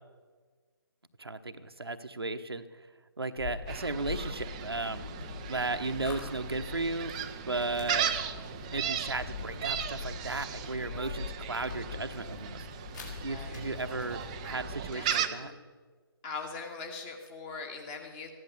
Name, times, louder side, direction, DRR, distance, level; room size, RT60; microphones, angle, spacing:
voice 1, 1.2-2.7 3.2-5.1 5.5-7.1 7.5-8.1 8.7-12.7 13.2-15.5, right 3 dB, 75° right, 7 dB, 1.0 m, -35 dB
sound 1, 3.4-14.8, left 5 dB, 50° left, 4.3 m, -42 dB
Gull seagull, 3.7-15.3, right 9 dB, 15° right, 0.5 m, -37 dB
voice 2, 13.2-13.6 14.9-15.6 16.2-18.3, left 4 dB, 20° left, 2 dB, 1.7 m, -41 dB
15.0 x 11.0 x 6.8 m, 1.5 s
figure-of-eight pair, 145°, 13 cm